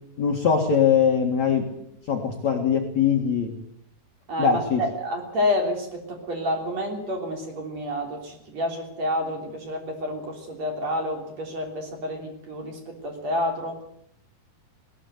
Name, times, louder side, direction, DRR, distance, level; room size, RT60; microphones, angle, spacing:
voice 1, 0.2-1.7 2.1-3.5 4.4-4.8, left 7 dB, 50° left, 1 dB, 2.5 m, -21 dB
voice 2, 4.3-13.8, left 1 dB, 40° right, 2 dB, 4.2 m, -29 dB
20.0 x 18.0 x 8.1 m, 0.72 s
omnidirectional pair, 5.0 m